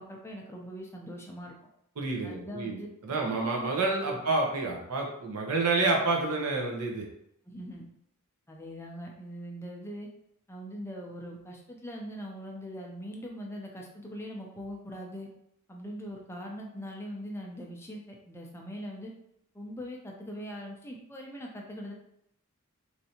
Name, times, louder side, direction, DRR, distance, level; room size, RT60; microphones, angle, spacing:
voice 1, 0.0-1.5 2.2-2.9 3.3-3.5 7.5-7.8 8.5-10.1 10.5-15.3 15.7-19.1 19.5-21.9, equal, 10° left, 0 dB, 0.4 m, -41 dB
voice 2, 2.0-7.0, right 3 dB, 80° right, 0 dB, 0.8 m, -29 dB
3.2 x 2.6 x 2.7 m, 0.77 s
head